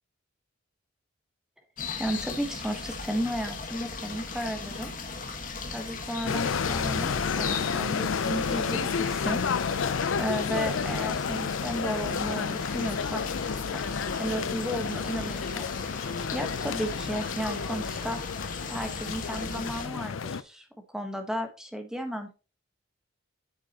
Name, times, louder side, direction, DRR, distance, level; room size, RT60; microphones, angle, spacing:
sound 1, 1.8-19.9, left 4 dB, 40° left, 1.5 m, -38 dB
voice 1, 2.0-4.9 5.7-9.4 10.2-13.2 13.7-13.8 14.2-15.7 16.3-18.2 18.7-22.3, equal, 5° right, 5 dB, 1.3 m, -34 dB
sound 2, 6.2-20.4, left 6 dB, 70° left, 0.5 m, -31 dB
sound 3, 6.7-16.3, right 3 dB, 55° right, 4.6 m, -58 dB
8.8 x 7.3 x 2.9 m, 0.32 s
head